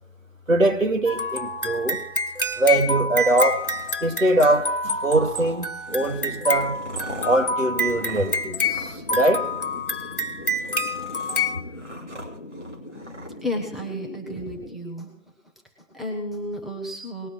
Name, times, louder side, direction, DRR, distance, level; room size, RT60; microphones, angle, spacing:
voice 1, 0.5-2.0 2.6-3.7 4.0-6.8 7.2-9.5, right 2 dB, 85° right, 2.2 m, -22 dB
sound 1, 1.1-11.6, left 1 dB, 45° left, 1.4 m, -27 dB
sound 2, 3.1-4.1 4.9-9.2 9.4-9.9 10.3-13.3, equal, 65° right, 3.0 m, -42 dB
sound 3, 5.9-14.8, left 1 dB, 20° left, 1.8 m, -41 dB
voice 2, 13.4-15.1 15.9-17.3, left 1 dB, ahead, 0.8 m, -32 dB
19.5 x 9.9 x 3.1 m
figure-of-eight pair, 175°, 39 cm